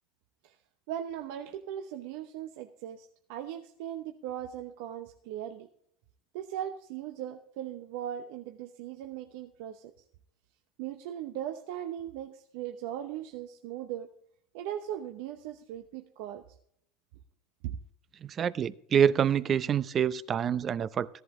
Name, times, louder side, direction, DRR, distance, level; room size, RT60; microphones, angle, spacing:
voice 1, 0.9-5.7 6.3-9.9 10.8-14.1 14.5-16.4 17.6-17.8, right 11 dB, 75° right, 0.8 m, -38 dB
voice 2, 18.2-21.1, right 8 dB, 40° right, 0.6 m, -26 dB
14.0 x 11.0 x 3.7 m
hypercardioid pair, 90°, 0 cm